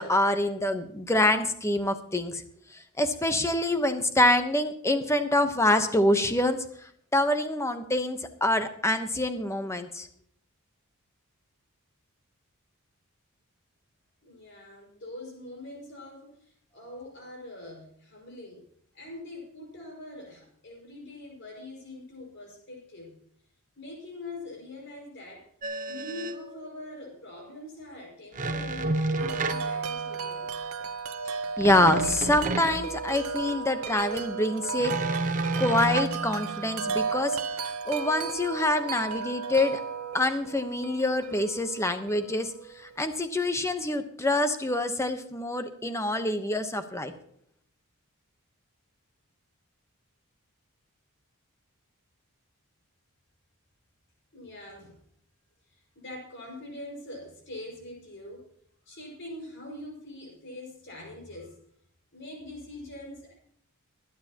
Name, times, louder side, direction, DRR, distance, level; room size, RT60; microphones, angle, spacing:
voice 1, 0.0-2.4 3.0-6.6 7.1-10.1 31.3-34.9 35.6-37.4 37.9-39.8 40.1-42.5 43.0-47.1, left 1 dB, 15° left, 8 dB, 1.0 m, -26 dB
voice 2, 14.2-18.6 18.9-23.2 23.8-25.5 25.9-30.5 54.3-54.9 55.7-58.4 58.9-61.6 62.1-63.3, left 2 dB, 55° left, 0 dB, 5.5 m, -43 dB
sound 1, 25.6-26.4 28.3-30.3 31.6-33.4 34.8-36.8, right 3 dB, 35° right, 1.0 m, -31 dB
Wind chime, 29.2-43.1, right 5 dB, 70° right, 0.9 m, -34 dB
24.0 x 9.5 x 2.9 m, 0.65 s
head